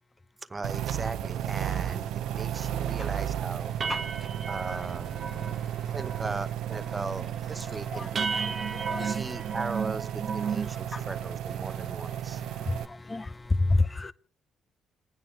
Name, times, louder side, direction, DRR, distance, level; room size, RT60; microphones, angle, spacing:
voice 1, 0.5-3.7 4.5-5.2 5.9-8.3 9.0-12.4, right 3 dB, 25° right, 0.9 m, -38 dB
sound 1, 0.6-12.9, right 11 dB, 85° right, 0.6 m, -34 dB
sound 2, 2.3-2.4 2.8-3.0 3.3-3.4 3.8-5.6 5.9-6.4 6.6-7.1 7.5-7.6 8.2-10.7, right 6 dB, 45° right, 1.2 m, -34 dB
voice 2, 3.9-4.5 5.3-6.0 7.6-9.3 10.7-11.1 12.4-14.1, left 2 dB, 20° left, 0.7 m, -31 dB
28.5 x 9.6 x 3.3 m
cardioid pair, 90°, 0 cm